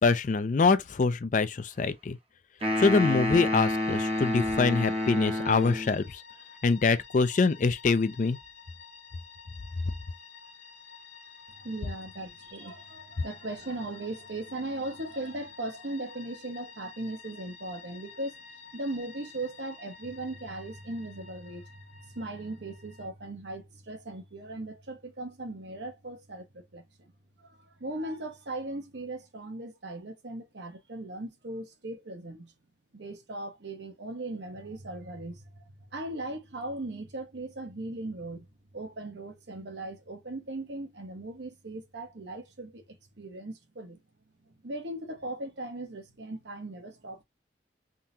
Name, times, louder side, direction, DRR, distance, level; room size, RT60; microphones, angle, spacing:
voice 1, 0.0-2.2 2.8-6.2 6.6-8.4, left 4 dB, 45° left, 0.4 m, -24 dB
sound 1, 2.6-6.0, left 1 dB, 35° right, 0.7 m, -29 dB
sound 2, 3.6-23.1, left 5 dB, 90° left, 1.4 m, -51 dB
voice 2, 11.6-18.4 18.7-27.1 27.4-32.5 32.9-38.5 38.7-42.8 43.2-44.0 44.5-47.2, right 2 dB, 75° right, 1.1 m, -38 dB
3.7 x 2.8 x 2.7 m
head